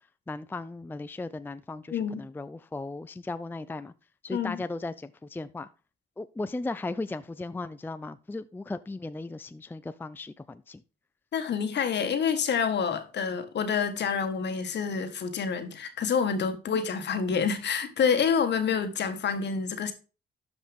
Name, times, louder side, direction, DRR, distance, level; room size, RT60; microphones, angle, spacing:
voice 1, 0.0-3.9 4.2-5.7 6.2-10.8 16.7-16.8, left 2 dB, 10° left, 0.5 m, -37 dB
voice 2, 1.9-2.2 4.3-4.6 11.3-19.9, left 6 dB, 60° left, 1.7 m, -28 dB
12.5 x 5.3 x 3.6 m
cardioid pair, 90°, 20 cm